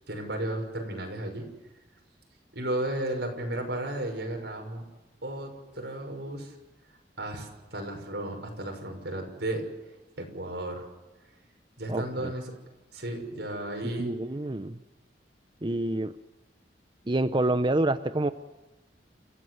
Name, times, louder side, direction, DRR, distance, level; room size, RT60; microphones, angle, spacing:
voice 1, 0.1-1.4 2.5-4.9 5.2-6.6 7.2-9.6 10.2-10.9 11.8-12.5 12.9-14.1, right 1 dB, 75° right, 2 dB, 6.1 m, -34 dB
voice 2, 11.9-12.3 14.0-14.8 15.6-16.2 17.1-18.3, right 2 dB, 30° right, 11 dB, 0.7 m, -27 dB
29.5 x 15.5 x 7.9 m, 1.1 s
head